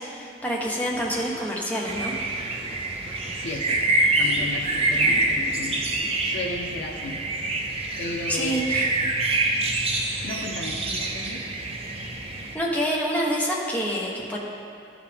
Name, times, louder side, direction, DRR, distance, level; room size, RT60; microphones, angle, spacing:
voice 1, 0.0-2.1 8.3-8.9 12.2-14.4, equal, 10° left, -3 dB, 1.1 m, -27 dB
sound 1, 0.6-6.3, equal, 45° left, 2.0 m, -43 dB
sound 2, 1.9-12.6, right 2 dB, 35° right, 0.7 m, -26 dB
voice 2, 3.3-5.8 6.2-7.2 8.0-8.8 10.2-11.4, left 2 dB, 90° left, -1 dB, 0.8 m, -34 dB
13.0 x 5.0 x 3.5 m, 2.6 s
head